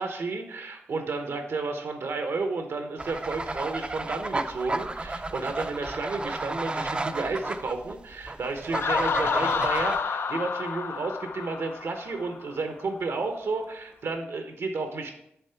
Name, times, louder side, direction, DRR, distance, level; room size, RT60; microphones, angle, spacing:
voice 1, 0.0-15.1, right 3 dB, 80° right, 5 dB, 0.8 m, -32 dB
sound 1, 3.0-10.0, right 2 dB, 25° right, 0.4 m, -32 dB
Laughter, 8.7-12.4, left 6 dB, 65° left, 0.3 m, -29 dB
7.0 x 3.7 x 5.6 m, 0.77 s
wide cardioid pair, 110°, 4 cm